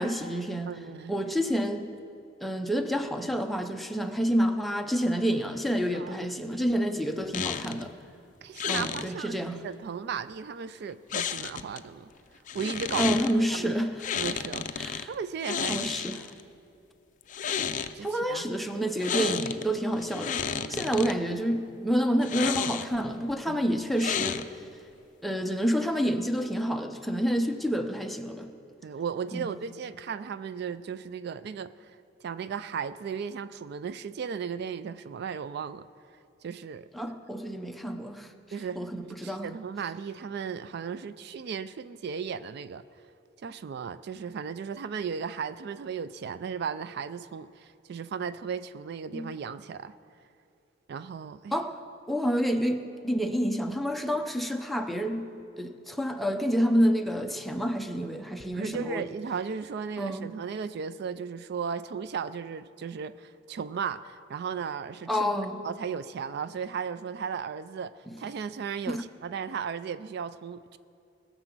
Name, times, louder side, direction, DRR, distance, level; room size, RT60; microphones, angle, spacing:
voice 1, 0.0-0.8 1.1-1.9 2.4-7.9 8.7-9.6 13.0-14.0 14.8-15.1 15.7-16.2 18.0-20.4 20.7-24.5 25.2-28.5 29.3-29.5 36.9-38.3 38.8-39.5 49.1-49.3 51.5-51.7 52.1-59.1 60.0-60.3 65.1-65.6 68.9-69.0, equal, ahead, 5 dB, 0.6 m, -28 dB
voice 2, 0.7-1.2 5.9-6.3 8.4-12.1 12.5-13.2 13.5-13.8 14.1-16.0 17.9-18.4 20.5-21.0 23.5-23.7 28.8-32.0 32.2-35.9 36.4-36.9 38.5-38.9 39.2-42.8 43.4-49.9 50.9-51.6 58.5-65.3 65.6-70.8, right 6 dB, 60° right, 14 dB, 0.3 m, -36 dB
sound 1, 7.3-7.8 8.6-9.1 11.1-11.8 12.5-13.3 14.0-15.0 15.4-16.4 17.2-17.9 19.0-19.6 20.0-21.1 22.2-23.1 24.0-24.7, left 7 dB, 40° left, 0.4 m, -31 dB
20.0 x 6.9 x 6.1 m, 2.6 s
head